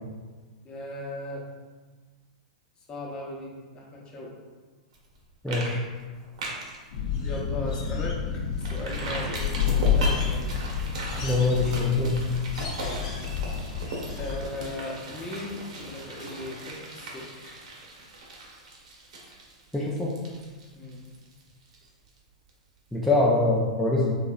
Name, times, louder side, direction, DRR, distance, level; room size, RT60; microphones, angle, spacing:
voice 1, 0.6-1.4 2.9-4.4 7.2-10.5 12.7-13.2 14.2-17.6 20.7-21.0, left 1 dB, 25° left, -2 dB, 0.8 m, -38 dB
sound 1, 4.9-5.2 5.5-5.7 6.0-6.8 7.2-7.3 7.7-7.8 8.6-22.2 22.5-22.6, right 2 dB, 70° right, 0.9 m, -38 dB
voice 2, 5.4-5.8 11.2-12.2 19.7-20.1 22.9-24.2, left 2 dB, ahead, -7 dB, 0.5 m, -24 dB
sound 2, 6.9-14.4, left 6 dB, 65° left, 0.7 m, -29 dB
3.9 x 2.8 x 2.4 m, 1.4 s
hypercardioid pair, 115°, 4 cm